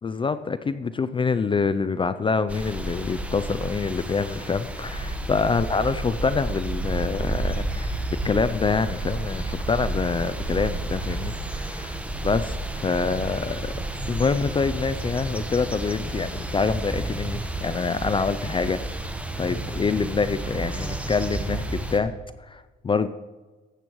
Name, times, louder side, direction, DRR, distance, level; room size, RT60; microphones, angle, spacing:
voice 1, 0.0-8.0 8.2-13.7 14.1-18.8 19.4-22.1 22.4-23.1, left 5 dB, 25° left, 13 dB, 0.4 m, -26 dB
sound 1, 2.5-22.0, right 2 dB, 5° right, 1.0 m, -31 dB
14.5 x 8.8 x 3.1 m, 1.2 s
cardioid pair, 90°, 20 cm